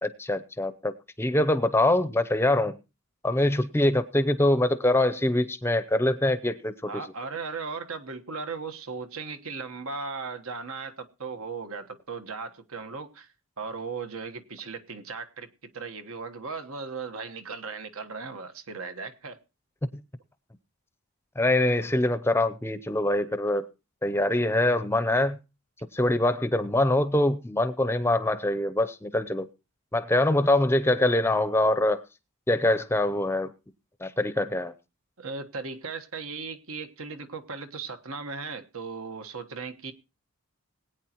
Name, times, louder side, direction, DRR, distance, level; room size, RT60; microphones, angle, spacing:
voice 1, 0.0-2.8 3.2-6.9 19.9-20.0 21.4-23.7 24.0-25.4 25.9-29.5 29.9-32.0 32.5-33.5 34.0-34.7, left 1 dB, 10° left, 0.6 m, -24 dB
voice 2, 6.8-13.3 13.6-19.4 35.2-39.9, right 4 dB, 75° right, 1.3 m, -37 dB
20.5 x 9.1 x 3.0 m
head